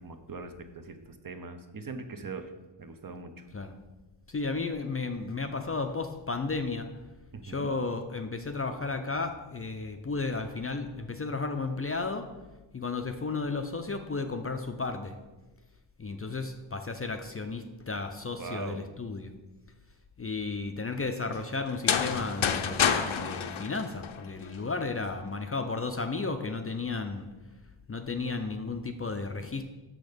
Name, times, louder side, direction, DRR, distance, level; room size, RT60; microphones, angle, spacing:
voice 1, 0.0-2.5 2.8-3.5 7.3-7.7 18.4-18.9, right 4 dB, 45° right, 8 dB, 0.7 m, -41 dB
voice 2, 4.3-6.9 7.4-12.3 12.7-15.1 16.0-19.3 20.2-27.3 27.9-29.6, left 3 dB, 30° left, 6 dB, 0.4 m, -33 dB
sound 1, 21.7-24.6, left 7 dB, 80° left, 0.7 m, -28 dB
6.5 x 6.2 x 5.0 m, 1.2 s
wide cardioid pair, 130°, 47 cm